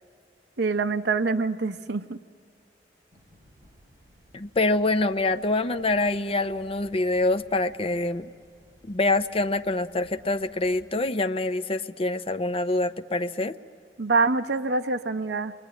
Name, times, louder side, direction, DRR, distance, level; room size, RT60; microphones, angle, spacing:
voice 1, 0.6-2.2 14.0-15.5, right 3 dB, 65° right, 8 dB, 0.8 m, -25 dB
sound 1, 3.1-10.9, equal, 20° right, 5.5 m, -57 dB
voice 2, 4.3-8.3 8.9-13.5, left 2 dB, 35° left, 9 dB, 0.6 m, -25 dB
27.5 x 22.0 x 9.7 m, 2.2 s
head